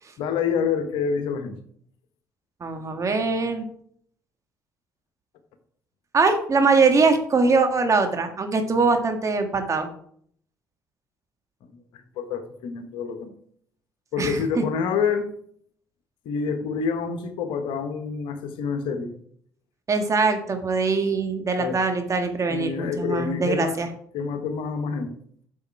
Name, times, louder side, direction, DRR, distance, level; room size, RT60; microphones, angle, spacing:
voice 1, 0.2-1.6 11.9-13.3 14.1-15.3 16.2-19.1 21.6-21.8 22.5-23.9 24.1-25.2, left 6 dB, 65° left, 7 dB, 1.2 m, -27 dB
voice 2, 2.6-3.7 6.1-9.9 14.2-14.4 19.9-23.9, right 4 dB, 35° right, 5 dB, 1.7 m, -22 dB
8.4 x 6.5 x 4.7 m, 0.62 s
figure-of-eight pair, 50°, 9 cm